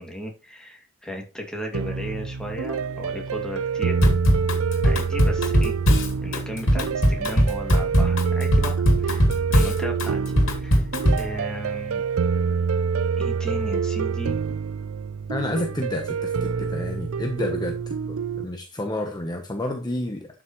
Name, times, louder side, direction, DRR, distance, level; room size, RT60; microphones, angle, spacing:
voice 1, 0.0-4.1 4.8-5.7 6.2-9.2 9.5-10.2 10.5-10.9 11.2-12.0 13.2-14.4 15.6-15.7, equal, 5° left, 2.4 m, -35 dB
sound 1, 1.7-18.4, right 6 dB, 80° right, 0.5 m, -26 dB
Drum kit / Drum, 4.0-11.3, equal, 70° left, 2.7 m, -20 dB
voice 2, 15.3-20.3, left 1 dB, 20° left, 1.0 m, -30 dB
12.0 x 6.3 x 3.1 m
head